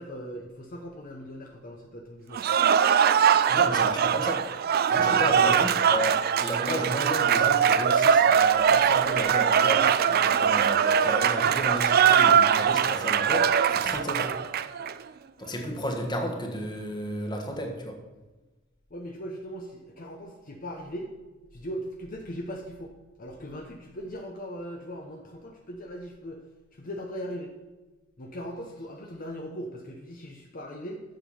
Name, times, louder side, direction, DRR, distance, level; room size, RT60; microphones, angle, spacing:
voice 1, 0.0-2.4 4.9-5.5 18.9-21.1 21.5-26.4 26.7-27.5 28.2-31.0, equal, 45° left, 2 dB, 0.9 m, -39 dB
Cheering / Applause, 2.3-14.9, right 8 dB, 50° right, 0.4 m, -22 dB
voice 2, 3.5-4.4 4.9-14.3 15.4-18.0, equal, 20° left, 3 dB, 1.4 m, -33 dB
7.8 x 7.0 x 5.6 m, 1.2 s
head